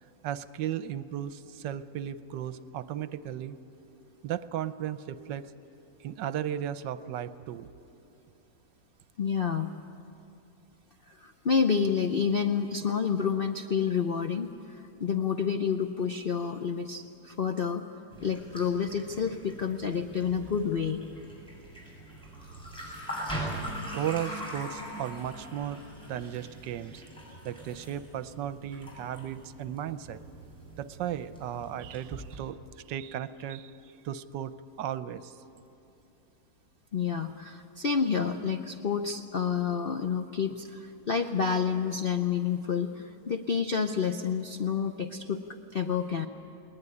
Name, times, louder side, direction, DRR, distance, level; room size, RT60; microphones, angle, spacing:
voice 1, 0.2-3.6 4.2-5.5 6.0-7.7 23.2-23.3 23.9-25.8 26.1-27.0 27.4-30.2 30.8-32.6 32.9-33.7 34.0-35.3, right 10 dB, 75° right, 14 dB, 1.3 m, -35 dB
voice 2, 9.2-9.7 11.1-17.9 18.2-21.0 36.9-45.4 45.7-46.3, left 6 dB, 65° left, 6 dB, 0.5 m, -29 dB
sound 1, 18.1-32.4, right 1 dB, 5° left, 6.6 m, -42 dB
20.5 x 19.5 x 9.8 m, 2.7 s
omnidirectional pair, 2.0 m